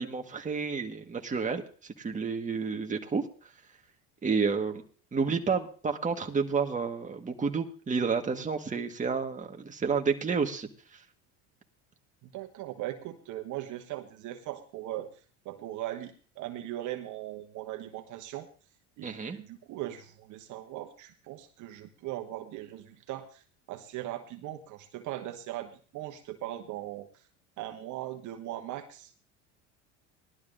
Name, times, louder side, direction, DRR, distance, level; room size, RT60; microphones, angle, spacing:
voice 1, 0.0-3.3 4.2-4.8 5.1-11.0 19.0-19.4, right 5 dB, 20° right, 4 dB, 1.6 m, -30 dB
voice 2, 12.2-18.5 19.0-27.3 27.6-29.1, right 14 dB, 55° right, 6 dB, 1.2 m, -39 dB
19.5 x 12.0 x 2.6 m, 0.40 s
supercardioid pair, 90°, 35 cm